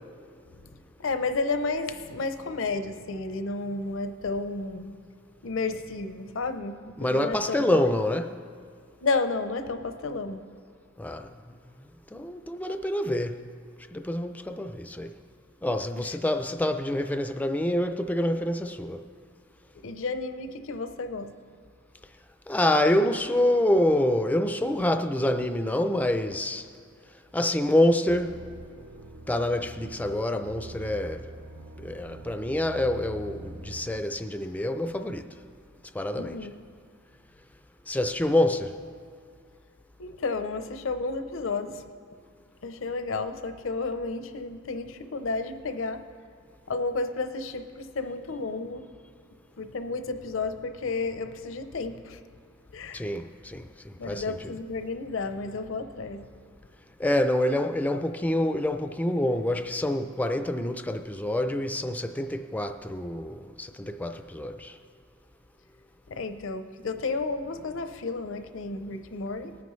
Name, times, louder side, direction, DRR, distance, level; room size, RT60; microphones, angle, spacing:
voice 1, 1.0-5.0 5.4-7.8 9.0-10.4 16.0-16.2 19.8-21.3 36.1-36.5 40.0-41.8 42.6-46.0 46.7-48.8 49.6-52.2 52.7-53.1 54.0-56.3 66.1-69.6, left 3 dB, 65° left, 0.7 m, -32 dB
voice 2, 7.0-8.4 11.0-11.3 12.1-13.4 13.9-15.2 15.6-19.1 22.5-26.7 27.3-28.4 29.3-31.3 31.8-35.3 35.9-36.5 37.9-38.7 52.9-54.4 57.0-64.7, left 1 dB, 10° left, 0.4 m, -27 dB
sound 1, 28.1-34.0, right 1 dB, 55° right, 0.6 m, -44 dB
19.5 x 9.4 x 3.2 m
head